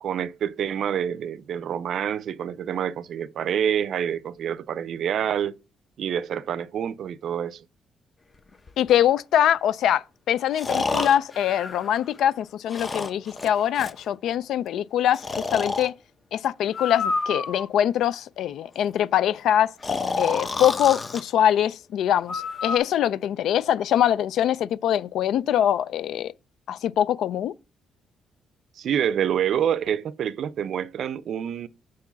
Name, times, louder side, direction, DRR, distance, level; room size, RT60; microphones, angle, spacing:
voice 1, 0.0-5.5 6.0-7.6 28.8-31.7, right 9 dB, 65° right, 0.4 m, -27 dB
Breathing, 8.7-8.8 10.5-12.3 12.7-14.0 15.1-15.9 16.7-17.9 19.8-21.2 22.3-22.8, left 4 dB, 35° left, 0.8 m, -29 dB
voice 2, 8.8-15.9 16.3-19.7 20.2-26.3 26.7-27.5, left 10 dB, 75° left, 0.3 m, -23 dB
4.7 x 4.6 x 5.7 m
cardioid pair, 90°, 0 cm